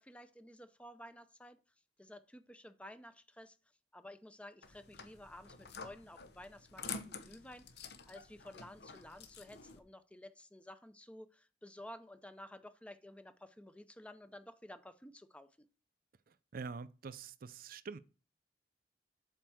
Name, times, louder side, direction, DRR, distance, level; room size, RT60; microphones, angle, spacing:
voice 1, 0.0-1.6 2.0-3.6 3.9-15.7, left 1 dB, 5° left, 0.6 m, -53 dB
sound 1, 4.6-9.8, left 5 dB, 70° left, 1.0 m, -49 dB
voice 2, 16.3-18.0, right 5 dB, 55° right, 0.5 m, -46 dB
7.7 x 4.5 x 6.2 m
head